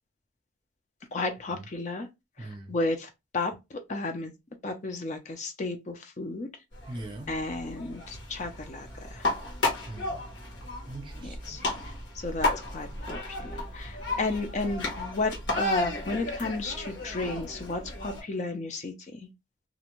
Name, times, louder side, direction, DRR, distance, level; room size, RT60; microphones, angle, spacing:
voice 1, 1.1-2.1 2.4-3.5 3.9-4.3 4.6-6.5 7.3-9.2 11.5-11.6 12.2-18.9, left 3 dB, 40° left, 0.4 m, -33 dB
voice 2, 2.4-2.8 6.9-7.3 9.9-10.2 10.9-11.6, right 2 dB, 25° right, 0.5 m, -41 dB
sound 1, 6.7-18.2, left 2 dB, 75° left, 1.1 m, -33 dB
2.5 x 2.1 x 2.9 m
head